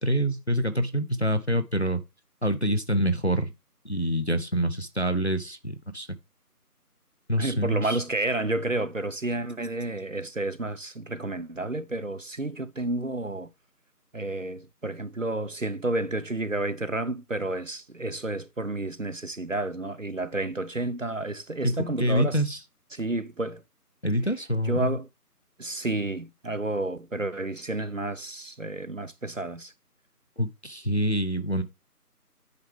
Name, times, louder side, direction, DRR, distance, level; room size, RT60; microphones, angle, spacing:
voice 1, 0.0-2.0 2.4-3.5 3.8-6.2 7.3-8.0 21.6-22.6 24.0-25.0 30.4-31.6, equal, 45° left, 0.6 m, -26 dB
voice 2, 7.4-13.5 14.1-22.4 22.9-23.6 24.6-25.1 25.6-29.7, right 2 dB, 55° right, 0.6 m, -30 dB
9.4 x 4.6 x 3.3 m
figure-of-eight pair, 180°, 47 cm